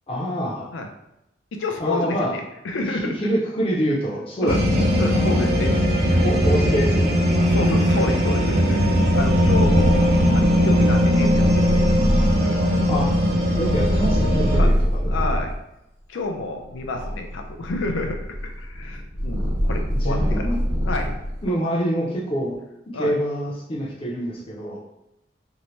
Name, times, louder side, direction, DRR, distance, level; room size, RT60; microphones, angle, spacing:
voice 1, 0.1-0.7 1.8-2.4 2.9-5.5 6.2-7.7 10.0-10.8 12.6-13.1 13.5-15.3 16.9-17.1 19.9-20.6 21.4-22.6 22.9-24.8, equal, 30° left, -3 dB, 0.5 m, -26 dB
voice 2, 1.5-3.1 4.4-4.6 5.0-5.8 6.1-6.3 7.4-12.6 14.6-14.7 15.1-15.5 16.1-20.5 20.8-21.2 22.9-23.1, left 3 dB, 80° left, 3 dB, 0.4 m, -30 dB
sound 1, 4.5-14.6, equal, 50° right, 0.4 m, -19 dB
Purr, 9.1-15.6 16.2-21.5, equal, 90° right, 1.0 m, -25 dB
2.7 x 2.1 x 3.1 m, 0.87 s
head